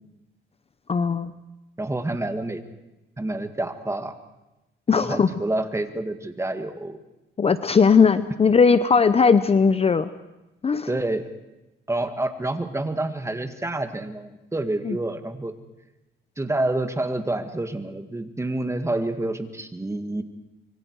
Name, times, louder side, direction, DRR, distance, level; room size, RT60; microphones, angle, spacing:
voice 1, 0.9-1.3 4.9-5.3 7.4-10.1 10.6-10.9 14.8-15.0, left 5 dB, 30° left, 13 dB, 0.7 m, -18 dB
voice 2, 1.8-2.6 3.2-4.2 4.9-7.0 10.9-11.2 11.9-15.6 16.4-20.2, right 2 dB, 15° right, 8 dB, 1.9 m, -28 dB
25.5 x 23.5 x 4.7 m, 0.98 s
cardioid pair, 90°, 20 cm